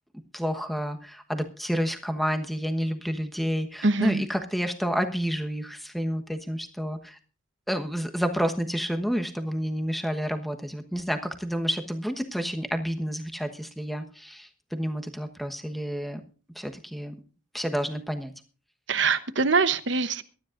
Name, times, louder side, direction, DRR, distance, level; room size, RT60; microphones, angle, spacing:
voice 1, 0.3-7.2 7.7-16.2 16.5-17.1 17.5-18.3, equal, ahead, 6 dB, 1.1 m, -29 dB
voice 2, 3.8-4.2 18.9-20.2, right 4 dB, 60° right, 12 dB, 1.0 m, -23 dB
23.0 x 12.5 x 2.6 m, 0.37 s
head